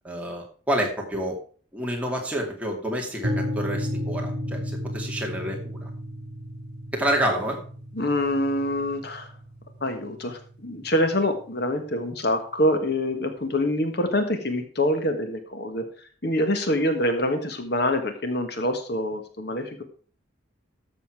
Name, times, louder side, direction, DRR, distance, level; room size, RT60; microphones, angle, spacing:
voice 1, 0.0-1.4 1.7-5.9 6.9-7.6, right 1 dB, 5° right, 0 dB, 2.3 m, -28 dB
sound 1, 3.2-11.1, equal, 50° right, 4.7 m, -33 dB
voice 2, 7.9-9.3 9.8-15.9 16.2-19.8, left 1 dB, 55° left, 7 dB, 1.5 m, -25 dB
13.0 x 7.1 x 4.7 m, 0.42 s
head